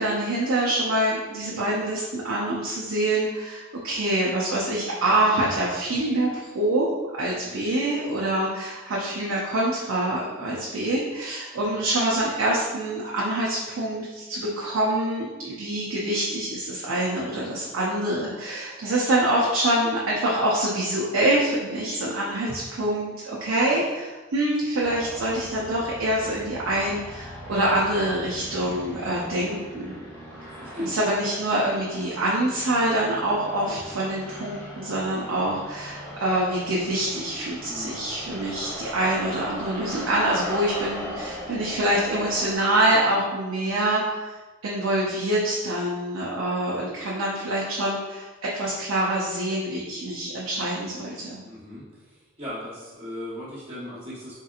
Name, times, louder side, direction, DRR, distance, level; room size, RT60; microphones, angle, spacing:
voice 1, 0.0-6.9 7.1-30.0 30.8-44.4 44.6-51.4, right 1 dB, 85° right, -5 dB, 0.5 m, -25 dB
sound 1, 24.8-42.6, equal, 10° left, 0.6 m, -39 dB
voice 2, 30.6-31.0 33.8-33.9 37.7-38.0 51.4-51.8 52.4-54.4, left 1 dB, 30° right, -9 dB, 1.0 m, -37 dB
3.5 x 2.8 x 2.4 m, 1.2 s
head